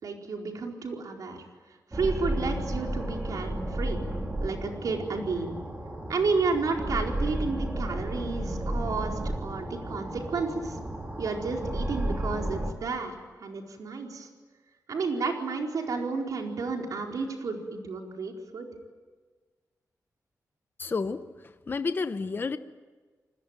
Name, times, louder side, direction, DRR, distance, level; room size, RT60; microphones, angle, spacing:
voice 1, 0.0-1.4 1.9-4.0 4.4-5.6 6.1-10.8 11.2-14.3 14.9-18.7, right 4 dB, 70° right, 1 dB, 4.5 m, -31 dB
sound 1, 1.9-12.7, right 1 dB, 20° right, 3.3 m, -33 dB
voice 2, 20.8-22.6, left 4 dB, 35° left, 10 dB, 0.8 m, -31 dB
29.0 x 20.5 x 9.1 m, 1.4 s
wide cardioid pair, 155°, 6 cm